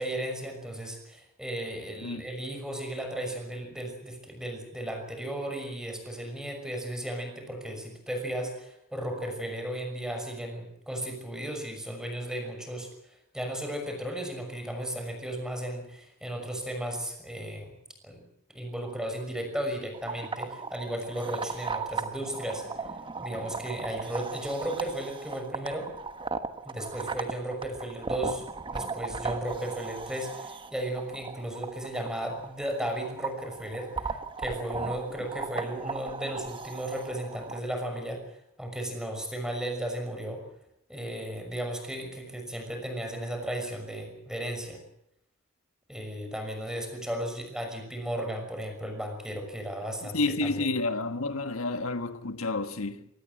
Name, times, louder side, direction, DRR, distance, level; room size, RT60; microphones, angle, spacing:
voice 1, 0.0-12.9 13.3-17.7 18.0-18.3 18.5-22.6 23.2-25.9 26.6-38.2 38.6-40.4 40.9-44.8 45.9-50.7, right 1 dB, 5° right, 6.1 m, -35 dB
sound 1, 19.9-37.6, right 4 dB, 25° right, 1.3 m, -37 dB
voice 2, 50.0-53.1, left 2 dB, 90° left, 1.5 m, -30 dB
24.0 x 19.0 x 7.7 m
head